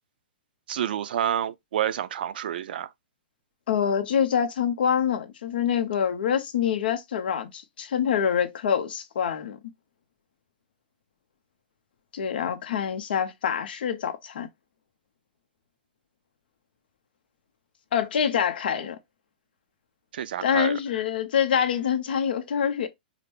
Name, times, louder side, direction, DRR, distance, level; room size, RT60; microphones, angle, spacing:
voice 1, 0.7-2.9 20.1-20.8, right 10 dB, 70° right, 0.5 m, -28 dB
voice 2, 3.7-9.6 12.1-14.5 17.9-19.0 20.4-22.9, left 8 dB, 70° left, 0.8 m, -25 dB
5.0 x 2.1 x 3.1 m
hypercardioid pair, 145°, 5 cm